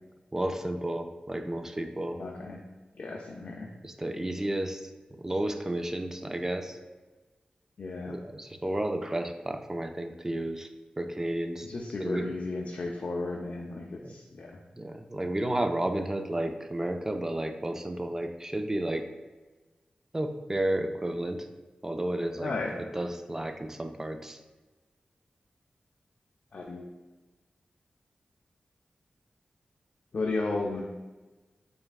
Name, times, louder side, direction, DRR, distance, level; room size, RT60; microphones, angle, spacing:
voice 1, 0.3-2.2 3.8-4.9 5.2-6.8 8.1-10.7 11.0-11.7 12.0-12.3 14.0-14.1 14.8-19.1 20.1-21.5 21.8-22.5 22.9-24.4, right 1 dB, 15° right, 6 dB, 0.3 m, -32 dB
voice 2, 2.2-2.6 3.0-3.7 7.8-8.2 11.6-14.6 22.4-22.7 26.5-26.9 30.1-30.9, left 3 dB, 60° left, -1 dB, 0.4 m, -34 dB
4.6 x 3.2 x 2.3 m, 1.2 s
wide cardioid pair, 70°, 3 cm